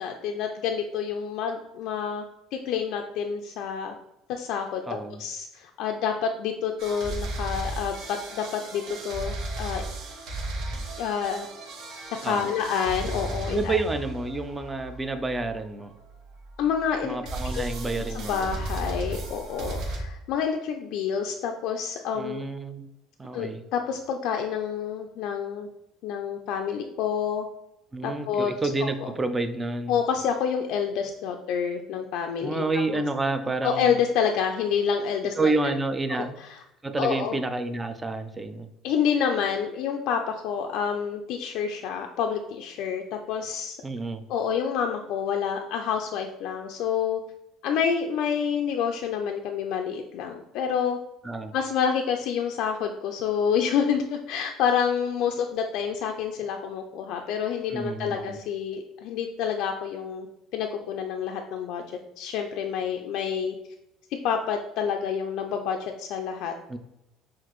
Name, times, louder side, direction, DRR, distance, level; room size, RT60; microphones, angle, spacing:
voice 1, 0.0-2.2 2.5-3.9 4.3-9.8 11.0-11.5 12.1-13.8 16.6-17.2 17.5-17.6 18.1-22.4 23.3-25.7 26.0-27.5 28.0-28.9 29.9-32.6 33.6-35.7 36.1-36.6 37.0-37.4 38.8-43.0 43.3-43.8 44.3-47.2 47.6-51.0 51.5-60.3 60.5-61.8 62.2-63.6 64.2-66.5, left 7 dB, 65° left, 4 dB, 0.4 m, -28 dB
voice 2, 4.9-5.2 12.2-12.5 13.5-15.9 17.0-18.6 22.1-22.9 23.2-23.6 27.9-29.9 32.4-33.9 35.4-36.3 36.8-38.7 43.8-44.2 51.2-51.5 57.7-58.4 66.7-66.8, right 3 dB, 15° right, 9 dB, 0.4 m, -29 dB
sound 1, 6.8-16.8 17.2-20.0, right 2 dB, 60° right, 1.0 m, -35 dB
5.9 x 2.5 x 3.0 m, 0.87 s
cardioid pair, 145°, 0 cm